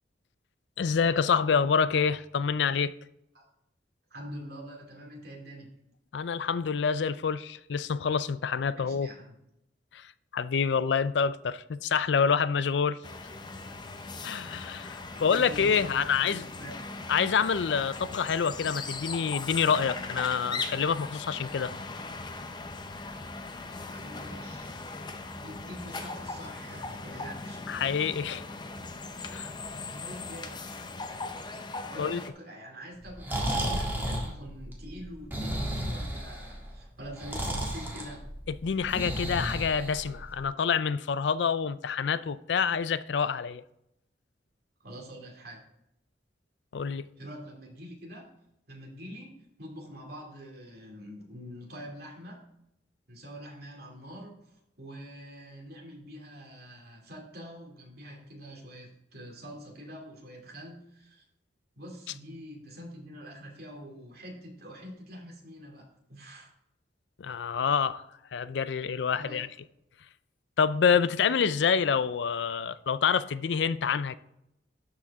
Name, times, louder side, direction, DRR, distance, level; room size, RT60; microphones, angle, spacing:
voice 1, 0.8-2.9 6.1-9.1 9.9-13.0 14.2-16.4 17.1-21.7 27.7-28.4 29.3-29.5 32.0-32.2 38.6-43.6 46.7-47.0 67.2-68.0 68.3-69.5 70.6-74.2, left 6 dB, 75° left, 0.4 m, -27 dB
voice 2, 4.1-5.7 8.8-9.3 15.1-16.7 23.9-24.8 25.4-27.6 29.9-30.6 31.9-38.2 44.8-45.6 47.2-48.3 48.7-52.4 53.1-61.2 61.8-66.5 69.1-69.4, equal, 60° right, 2.6 m, -45 dB
sound 1, 13.0-32.3, left 3 dB, 25° left, 0.6 m, -39 dB
Breathing, 33.0-40.4, right 1 dB, 10° right, 1.6 m, -33 dB
12.5 x 5.1 x 3.5 m
head